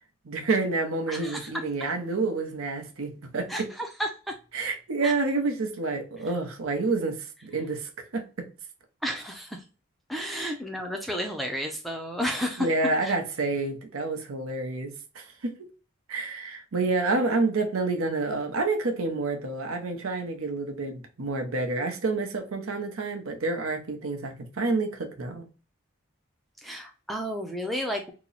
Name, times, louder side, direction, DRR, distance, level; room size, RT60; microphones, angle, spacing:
voice 1, 0.2-3.5 4.5-8.5 10.2-10.5 12.6-15.7 16.1-25.4, right 3 dB, 80° right, 0.7 m, -29 dB
voice 2, 1.1-1.5 3.5-4.4 5.0-5.1 9.0-9.6 10.1-12.7 13.0-13.1 26.6-28.1, equal, ahead, 0.4 m, -32 dB
2.9 x 2.0 x 3.8 m
head